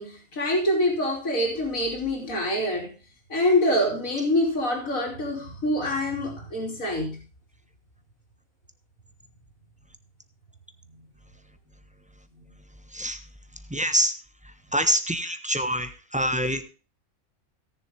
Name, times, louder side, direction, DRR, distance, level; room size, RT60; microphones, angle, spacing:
voice 1, 0.0-2.9 3.3-7.2, left 1 dB, 80° left, 3.6 m, -25 dB
voice 2, 13.7-14.1 14.7-16.6, equal, 5° right, 1.1 m, -25 dB
17.5 x 7.0 x 3.5 m
omnidirectional pair, 1.4 m